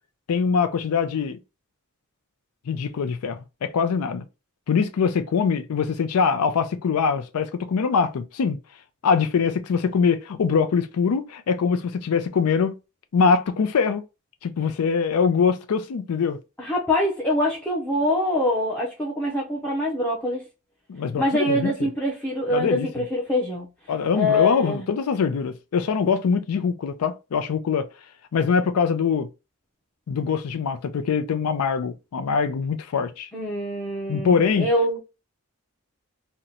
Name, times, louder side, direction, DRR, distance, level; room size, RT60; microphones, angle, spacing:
voice 1, 0.3-1.4 2.7-4.2 4.7-8.6 9.0-12.7 13.1-14.0 14.4-16.4 20.9-21.7 22.5-22.9 23.9-27.9 28.3-29.3 30.1-33.3 34.1-34.7, left 6 dB, 90° left, 0.4 m, -23 dB
voice 2, 16.6-20.4 21.2-23.7 24.1-24.9 33.3-35.0, left 1 dB, 5° left, 0.6 m, -24 dB
2.8 x 2.1 x 3.7 m
head